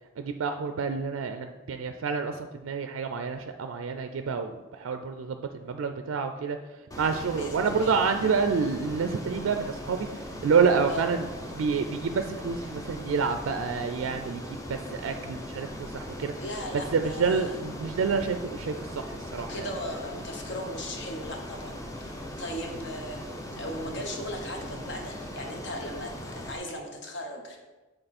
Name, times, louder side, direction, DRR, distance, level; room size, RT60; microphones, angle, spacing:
voice 1, 0.2-6.6 7.0-10.1 10.4-11.3 11.6-16.3 16.9-19.7, right 5 dB, 80° right, 7 dB, 0.4 m, -28 dB
Ocean, 6.9-26.6, left 1 dB, 15° left, 0.6 m, -39 dB
voice 2, 7.4-7.9 10.9-11.1 16.4-17.6 19.5-22.1 22.4-23.2 23.5-27.6, left 1 dB, 60° left, 2 dB, 1.1 m, -37 dB
7.8 x 3.9 x 4.2 m, 1.2 s
head